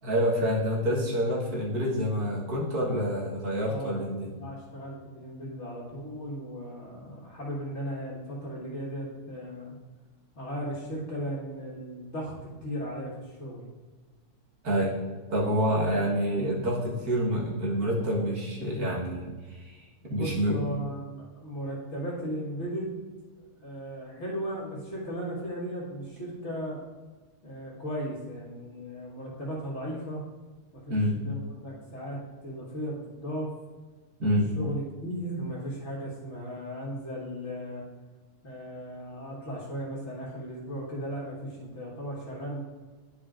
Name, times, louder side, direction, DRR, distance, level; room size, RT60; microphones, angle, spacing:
voice 1, 0.0-4.3 14.6-15.0 15.3-19.9 20.1-20.6 30.9-31.2 34.2-34.5, equal, 75° right, -3 dB, 1.9 m, -27 dB
voice 2, 3.7-9.7 10.3-12.3 12.6-13.6 20.0-23.0 23.4-26.8 27.4-30.2 30.7-33.5 34.2-37.8 38.4-42.6, equal, 50° left, -5 dB, 1.7 m, -36 dB
10.5 x 5.0 x 2.5 m, 1.4 s
omnidirectional pair, 1.6 m